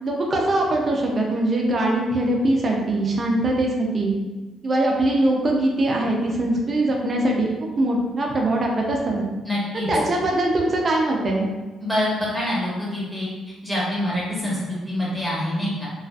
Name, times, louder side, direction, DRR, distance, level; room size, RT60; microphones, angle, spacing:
voice 1, 0.0-4.1 4.6-9.2 9.9-11.5, right 1 dB, 40° right, -1 dB, 0.5 m, -22 dB
voice 2, 9.4-9.9 11.8-13.3 13.6-14.6 14.9-15.9, left 1 dB, 5° left, -7 dB, 1.1 m, -25 dB
2.4 x 2.4 x 2.3 m, 1.2 s
cardioid pair, 90°, 0 cm